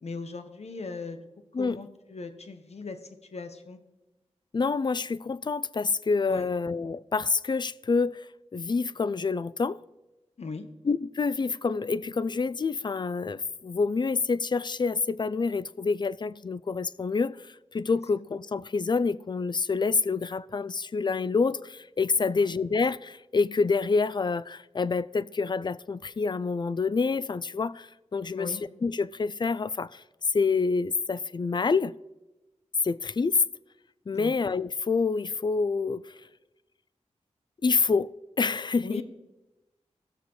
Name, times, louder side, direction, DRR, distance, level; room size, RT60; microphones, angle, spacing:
voice 1, 0.0-1.2 1.6-3.0 3.3-3.8 6.3-6.5 10.4-10.7 22.2-22.4 28.3-28.6 34.1-34.4 38.8-39.0, left 4 dB, 60° left, 1.0 m, -38 dB
voice 2, 4.5-9.8 10.8-30.0 30.3-31.9 32.8-33.4 34.1-36.2 37.6-39.0, left 4 dB, 40° left, 0.4 m, -27 dB
17.0 x 6.6 x 3.1 m
cardioid pair, 50°, 12 cm